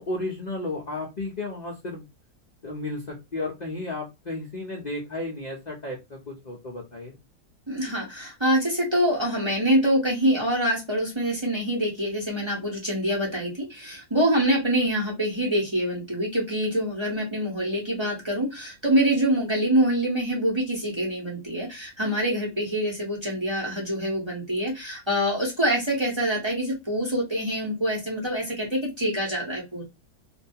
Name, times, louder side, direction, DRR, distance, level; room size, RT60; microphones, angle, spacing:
voice 1, 0.0-2.1 2.6-7.1, left 2 dB, 80° left, -2 dB, 0.3 m, -33 dB
voice 2, 7.7-29.8, equal, 25° right, -3 dB, 0.6 m, -25 dB
2.6 x 2.3 x 2.6 m, 0.23 s
omnidirectional pair, 1.7 m